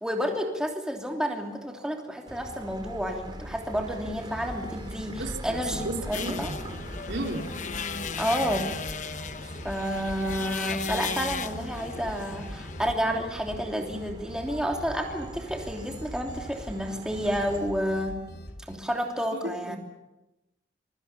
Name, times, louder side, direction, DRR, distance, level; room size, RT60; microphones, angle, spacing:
voice 1, 0.0-6.5 8.2-8.7 9.6-18.2 18.7-19.8, equal, 5° right, 1 dB, 3.0 m, -30 dB
sound 1, 2.3-17.6, right 1 dB, 25° right, 2.5 m, -43 dB
sound 2, 4.2-18.8, equal, 60° left, 3.1 m, -43 dB
voice 2, 5.0-6.6 7.1-7.5 19.3-19.8, right 1 dB, 80° right, 2 dB, 3.7 m, -34 dB
sound 3, 6.1-12.9, left 5 dB, 40° left, 1.0 m, -35 dB
26.5 x 23.5 x 7.1 m, 0.98 s
head